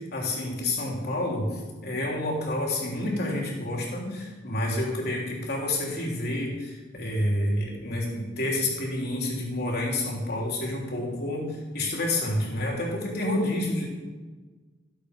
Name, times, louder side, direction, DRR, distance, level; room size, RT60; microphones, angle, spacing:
voice 1, 0.0-13.9, left 1 dB, 55° left, -2 dB, 3.4 m, -29 dB
14.0 x 8.2 x 5.2 m, 1.3 s
head